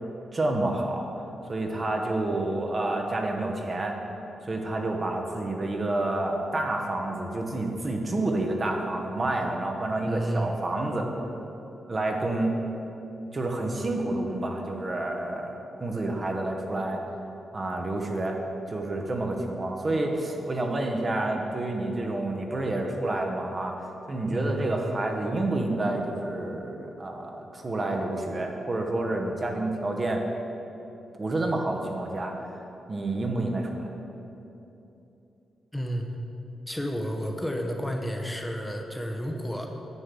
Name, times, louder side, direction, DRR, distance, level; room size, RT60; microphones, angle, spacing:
voice 1, 0.3-1.1 1.5-4.0 4.4-11.1 11.9-12.5 13.3-17.0 17.5-18.4 18.7-23.8 24.1-30.2 31.2-32.3 32.9-33.9, right 2 dB, 35° right, 2 dB, 0.9 m, -29 dB
voice 2, 10.1-10.6 24.3-24.7 35.7-36.1 36.7-39.7, equal, 10° left, 2 dB, 0.7 m, -31 dB
9.6 x 3.3 x 6.8 m, 2.9 s
cardioid pair, 90°, 0 cm